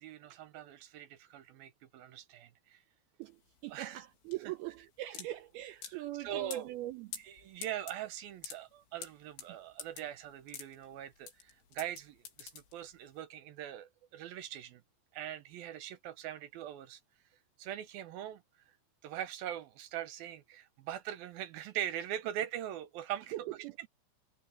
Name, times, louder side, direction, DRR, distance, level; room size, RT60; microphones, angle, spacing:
voice 1, 0.0-2.8 3.7-4.1 4.4-4.7 5.1-5.2 5.8-6.7 7.2-14.8 15.1-17.0 17.6-18.4 19.0-23.3 23.8-23.9, right 11 dB, 70° right, 2.4 m, -42 dB
sound 1, 3.2-13.2, left 8 dB, 85° left, 5.5 m, -49 dB
voice 2, 3.6-7.1 23.3-23.7, right 16 dB, 90° right, 2.2 m, -41 dB
omnidirectional pair, 5.2 m